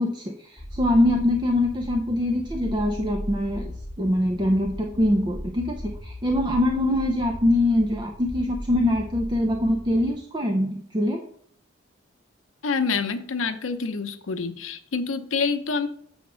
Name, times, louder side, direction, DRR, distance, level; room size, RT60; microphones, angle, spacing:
voice 1, 0.0-3.7 4.0-11.2, left 1 dB, 20° right, 2 dB, 0.5 m, -23 dB
sound 1, 0.6-10.1, equal, 15° left, 1.4 m, -37 dB
voice 2, 12.6-15.9, left 4 dB, 85° left, 9 dB, 0.7 m, -27 dB
7.1 x 3.5 x 6.1 m, 0.64 s
head